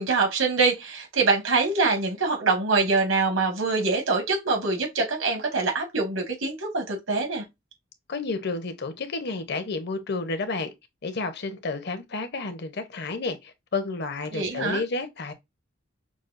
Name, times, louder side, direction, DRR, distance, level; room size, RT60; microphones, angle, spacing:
voice 1, 0.0-7.4 14.3-14.8, right 3 dB, 85° right, 1.7 m, -24 dB
voice 2, 8.1-10.7 11.0-15.3, left 3 dB, 60° left, 0.8 m, -31 dB
6.1 x 2.4 x 2.5 m
head